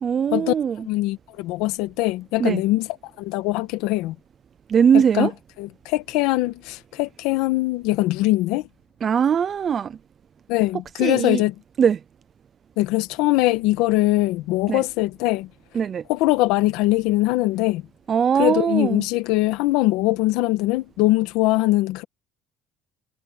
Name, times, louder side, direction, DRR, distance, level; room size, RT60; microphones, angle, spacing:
voice 1, 0.0-0.9 2.4-2.6 4.7-5.3 9.0-10.0 11.0-11.4 11.8-12.0 14.7-14.8 15.7-16.0 18.1-19.0, right 7 dB, 30° right, 0.4 m, -20 dB
voice 2, 0.8-2.9 3.2-4.1 4.9-5.3 5.6-8.7 10.5-11.5 12.8-15.5 16.1-17.8 18.4-22.0, left 18 dB, 85° left, 1.3 m, -22 dB
cardioid pair, 160°, 0 cm